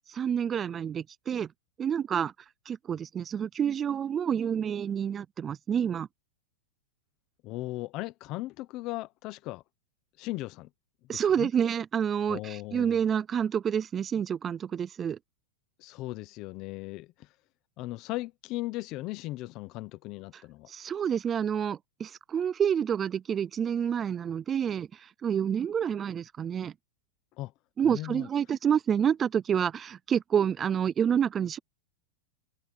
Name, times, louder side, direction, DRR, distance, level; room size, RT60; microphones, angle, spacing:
voice 1, 0.1-1.5 1.8-2.3 2.7-6.1 11.1-15.2 20.7-24.9 25.2-26.7 27.8-31.6, right 8 dB, 15° right, 0.3 m, -28 dB
voice 2, 7.4-9.6 10.2-10.7 11.1-11.5 12.3-13.0 15.8-17.1 17.8-20.7 27.4-27.5 27.8-28.3, left 18 dB, 35° left, 0.9 m, -37 dB
open air
supercardioid pair, 165°, 0 cm